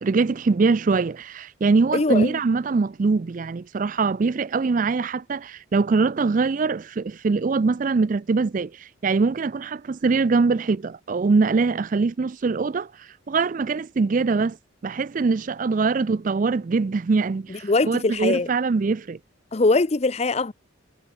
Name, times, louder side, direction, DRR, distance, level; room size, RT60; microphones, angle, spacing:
voice 1, 0.0-14.6 14.8-19.2, right 4 dB, 40° right, 0.4 m, -23 dB
voice 2, 1.9-2.4 17.5-18.5 19.5-20.5, left 3 dB, 30° left, 0.6 m, -22 dB
head